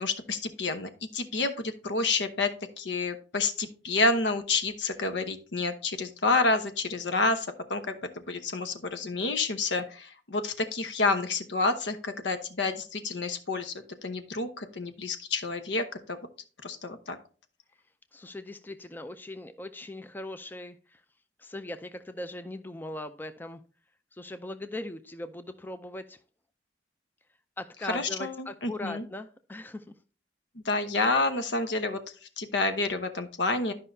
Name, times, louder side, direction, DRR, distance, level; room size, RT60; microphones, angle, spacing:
voice 1, 0.0-7.9 8.3-13.7 14.0-16.2 16.6-17.2 27.9-29.0 30.5-32.0 32.4-33.7, left 3 dB, 80° left, 8 dB, 0.9 m, -29 dB
voice 2, 18.1-21.0 21.4-23.6 24.1-26.2 27.6-29.9, left 1 dB, 10° left, 9 dB, 0.4 m, -40 dB
12.0 x 5.4 x 2.7 m, 0.37 s
head